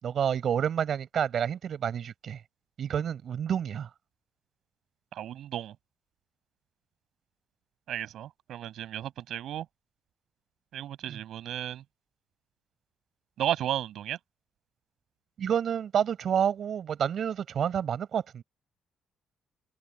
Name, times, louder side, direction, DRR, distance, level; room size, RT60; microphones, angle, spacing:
voice 1, 0.0-2.4 2.8-3.9 11.1-11.2 15.4-18.4, right 8 dB, 60° right, 7.4 m, -29 dB
voice 2, 5.1-5.7 7.9-9.6 10.7-11.8 13.4-14.2, right 11 dB, 75° right, 7.6 m, -34 dB
open air
cardioid pair, 90°, 0 cm